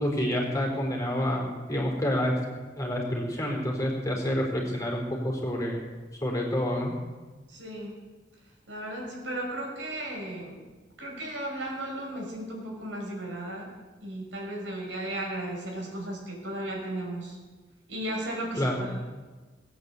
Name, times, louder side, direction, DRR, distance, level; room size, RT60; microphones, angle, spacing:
voice 1, 0.0-2.4 2.8-5.8 6.2-6.9 18.5-18.8, equal, 20° left, -1 dB, 4.1 m, -28 dB
voice 2, 7.5-8.0 8.7-10.6 11.0-13.7 14.0-17.4 17.9-19.0, right 1 dB, 80° right, -1 dB, 5.6 m, -35 dB
19.5 x 8.8 x 8.3 m, 1.3 s
head